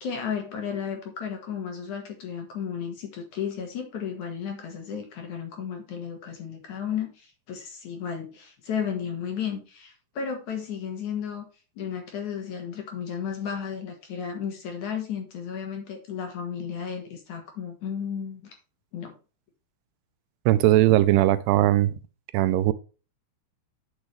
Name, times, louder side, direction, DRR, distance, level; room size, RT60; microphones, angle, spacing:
voice 1, 0.0-11.5 11.8-18.6 18.9-19.1 20.5-20.9 22.5-22.6, left 7 dB, 55° left, 2.7 m, -33 dB
voice 2, 20.5-22.0 22.3-22.7, right 15 dB, 85° right, 2.7 m, -19 dB
9.6 x 6.3 x 3.3 m
omnidirectional pair, 4.7 m